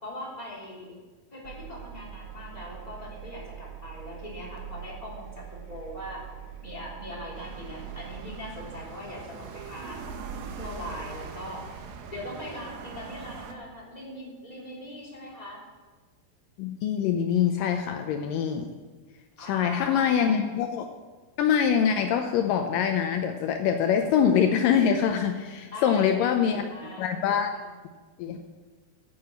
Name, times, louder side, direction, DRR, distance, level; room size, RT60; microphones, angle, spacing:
voice 1, 0.0-1.0 1.3-6.2 6.6-10.0 10.6-11.6 12.1-15.6 19.4-20.4 25.7-27.1 27.5-27.6, left 1 dB, 10° left, -5 dB, 3.1 m, -41 dB
Engine, 1.4-8.7, right 10 dB, 65° right, 1.7 m, -43 dB
sound 1, 7.3-13.5, right 5 dB, 90° right, 2.9 m, -41 dB
voice 2, 16.6-18.7 19.4-20.9 21.4-27.5 28.2-28.5, left 8 dB, 80° left, 5 dB, 2.3 m, -24 dB
10.0 x 8.6 x 7.8 m, 1.4 s
omnidirectional pair, 4.0 m